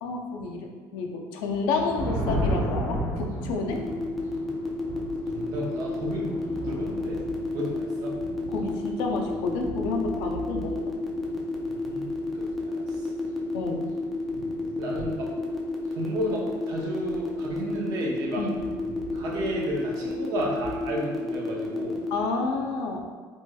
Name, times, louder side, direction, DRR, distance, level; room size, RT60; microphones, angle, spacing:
voice 1, 0.0-3.8 8.5-10.8 13.5-13.9 18.4-18.5 22.1-23.0, left 3 dB, 75° left, 2 dB, 0.4 m, -30 dB
sound 1, 2.0-15.6 16.0-16.4 17.0-17.8 18.4-20.9, equal, 25° left, 0.7 m, -36 dB
sound 2, 3.7-22.1, left 3 dB, 5° left, 0.3 m, -31 dB
voice 2, 5.3-7.2 7.5-8.2 11.6-13.1 14.8-15.3 15.9-18.5 19.0-22.0, right 1 dB, 55° right, -2 dB, 0.6 m, -33 dB
3.0 x 2.7 x 2.2 m, 1.5 s
cardioid pair, 170°, 7 cm